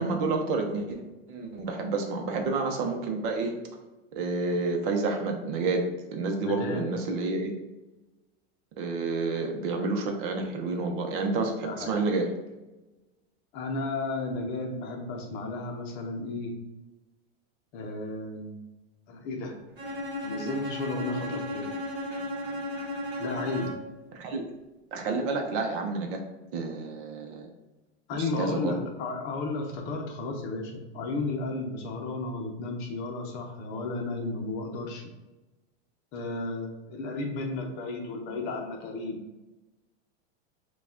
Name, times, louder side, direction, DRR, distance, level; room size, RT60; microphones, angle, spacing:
voice 1, 0.0-3.5 4.1-5.8 6.1-7.5 8.8-12.3 24.1-24.4 24.9-26.2 26.5-27.5 28.1-28.8, right 3 dB, 50° right, 3 dB, 0.8 m, -29 dB
voice 2, 6.4-6.8 11.3-11.4 11.6-12.0 13.5-16.5 17.7-18.6 19.1-19.5 20.2-21.7 23.2-23.7 28.1-35.0 36.1-39.2, left 2 dB, 35° left, 2 dB, 0.7 m, -33 dB
Bowed string instrument, 19.8-24.0, left 1 dB, 35° right, 1.2 m, -35 dB
4.5 x 2.4 x 3.7 m, 1.1 s
supercardioid pair, 150°, 34 cm